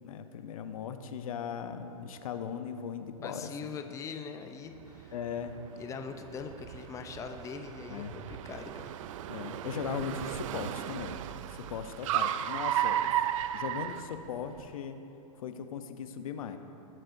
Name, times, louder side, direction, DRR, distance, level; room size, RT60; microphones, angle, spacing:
voice 1, 0.0-3.5 5.1-5.6 7.9-8.2 9.3-11.2 11.5-13.1 13.5-15.0 15.4-16.6, left 7 dB, 70° left, 8 dB, 0.7 m, -38 dB
voice 2, 3.2-5.1 5.8-9.0, left 5 dB, 15° left, 6 dB, 0.6 m, -42 dB
Car, 4.8-14.7, right 11 dB, 60° right, 0.4 m, -35 dB
18.0 x 7.6 x 2.6 m, 2.9 s
hypercardioid pair, 115°, 19 cm